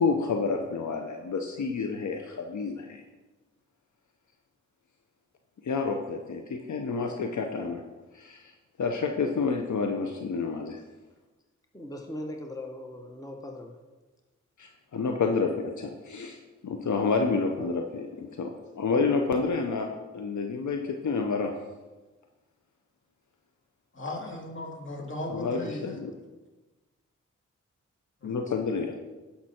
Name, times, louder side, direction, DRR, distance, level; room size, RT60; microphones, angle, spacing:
voice 1, 0.0-3.0 5.6-7.8 8.1-8.5 8.8-10.8 14.6-16.4 16.6-18.5 18.8-21.5 25.3-26.1 28.2-29.0, left 4 dB, 70° left, 3 dB, 0.8 m, -29 dB
voice 2, 11.7-13.8, left 1 dB, 10° left, 3 dB, 1.1 m, -39 dB
voice 3, 23.9-25.9 28.2-28.4, left 1 dB, 40° left, -1 dB, 2.6 m, -37 dB
11.5 x 5.8 x 4.4 m, 1.2 s
cardioid pair, 40°, 31 cm